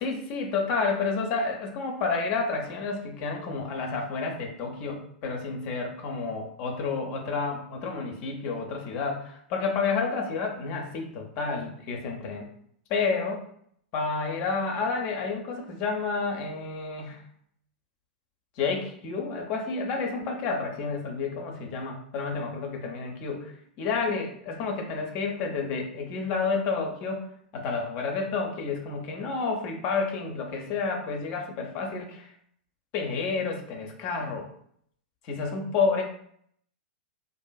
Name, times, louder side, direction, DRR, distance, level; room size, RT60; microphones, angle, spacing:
voice 1, 0.0-12.5 12.9-13.4 13.9-17.2 18.6-23.5 23.8-27.2 27.5-32.3 32.9-34.5 35.2-36.0, left 4 dB, 45° left, 2 dB, 0.5 m, -30 dB
2.5 x 2.5 x 2.3 m, 0.66 s
hypercardioid pair, 105°, 5 cm